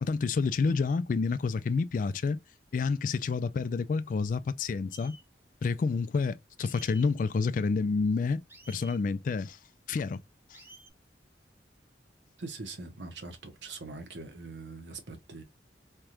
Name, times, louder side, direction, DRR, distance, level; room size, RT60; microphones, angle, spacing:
voice 1, 0.0-2.4 2.7-5.2 5.6-8.4 8.7-9.6 9.9-10.2 10.5-10.6, left 4 dB, 45° left, 0.3 m, -29 dB
sound 1, 4.9-5.2 6.6-7.1 8.5-9.0 10.5-10.9, right 2 dB, 10° right, 0.6 m, -51 dB
voice 2, 12.4-15.4, right 3 dB, 90° right, 1.0 m, -42 dB
3.4 x 2.4 x 2.8 m
head